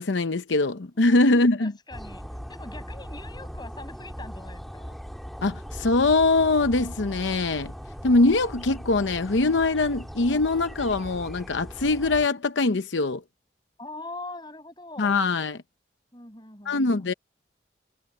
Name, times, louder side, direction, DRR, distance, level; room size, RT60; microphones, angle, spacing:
voice 1, 0.0-1.7 5.4-7.7 8.0-13.2 15.0-15.6 16.7-17.1, left 3 dB, 85° left, 0.8 m, -22 dB
voice 2, 1.6-5.0 13.8-15.2 16.1-17.1, left 2 dB, 25° left, 7.8 m, -42 dB
sound 1, 1.9-12.3, equal, ahead, 1.7 m, -39 dB
head